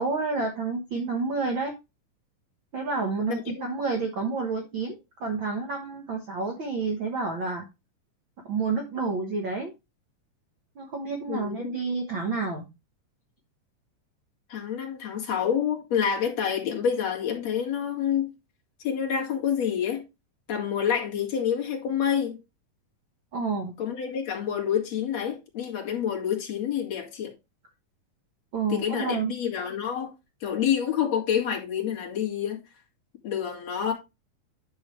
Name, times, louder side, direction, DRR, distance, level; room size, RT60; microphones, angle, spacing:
voice 1, 0.0-1.7 2.7-7.7 8.4-9.7 10.7-12.7 23.3-23.7 28.5-29.3, right 4 dB, 55° right, 1.5 m, -29 dB
voice 2, 3.3-3.7 11.3-11.7 14.5-18.3 18.8-20.0 20.5-22.4 23.8-27.3 28.7-30.1 30.4-32.6 33.2-33.9, left 8 dB, 55° left, 3.1 m, -28 dB
10.5 x 6.2 x 3.1 m
omnidirectional pair, 3.7 m